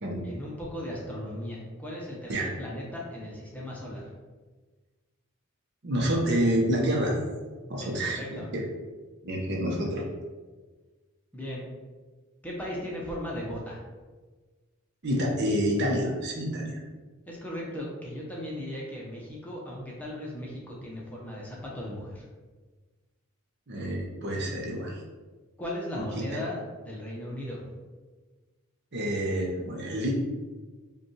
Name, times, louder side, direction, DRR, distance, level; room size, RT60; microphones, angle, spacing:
voice 1, 0.1-4.1 7.8-8.5 11.3-11.7 12.4-13.8 17.3-22.3 25.6-27.6, left 1 dB, 5° left, -4 dB, 0.7 m, -37 dB
voice 2, 5.8-7.1 7.7-8.6 9.2-10.0 15.0-16.8 23.7-25.0 26.0-26.1 26.3-26.4 28.9-30.1, equal, 50° right, -1 dB, 0.7 m, -28 dB
4.9 x 2.3 x 3.1 m, 1.3 s
head